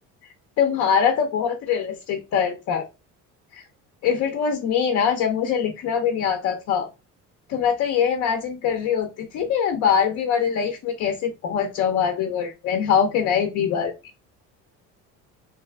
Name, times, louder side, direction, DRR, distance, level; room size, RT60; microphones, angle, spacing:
voice 1, 0.6-2.9 3.5-3.6 4.0-6.9 7.5-13.9, left 7 dB, 55° left, 4 dB, 0.6 m, -23 dB
2.9 x 2.2 x 3.3 m, 0.27 s
cardioid pair, 120°, 32 cm